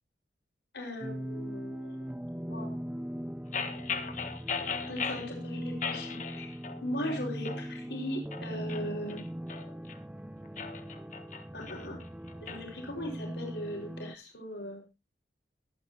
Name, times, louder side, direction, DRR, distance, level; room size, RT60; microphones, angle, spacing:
voice 1, 0.7-2.7 4.9-6.5 6.8-9.2 11.5-12.0 12.4-14.8, equal, 75° left, 1 dB, 5.2 m, -39 dB
sound 1, 1.0-14.2, equal, 5° right, 0.6 m, -40 dB
sound 2, 3.5-5.3 5.8-6.8 7.1-7.6 8.1-10.0 10.5-12.6, left 6 dB, 45° left, 1.4 m, -37 dB
23.0 x 8.9 x 2.9 m, 0.27 s
head